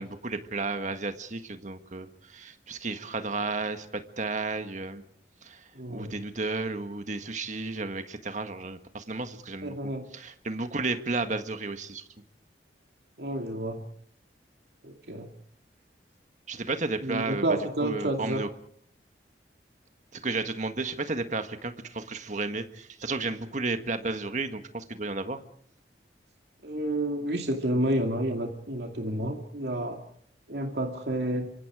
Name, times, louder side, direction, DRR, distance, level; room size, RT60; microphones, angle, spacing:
voice 1, 0.0-5.0 5.4-5.6 5.9-9.8 10.1-12.0 16.5-18.5 20.1-25.4, right 3 dB, 45° right, 8 dB, 1.7 m, -33 dB
voice 2, 5.7-6.2 9.6-10.1 13.2-13.9 14.8-15.3 17.0-18.4 26.6-30.0 30.5-31.5, right 1 dB, 70° right, 3 dB, 2.5 m, -30 dB
27.5 x 25.0 x 5.0 m, 0.63 s
head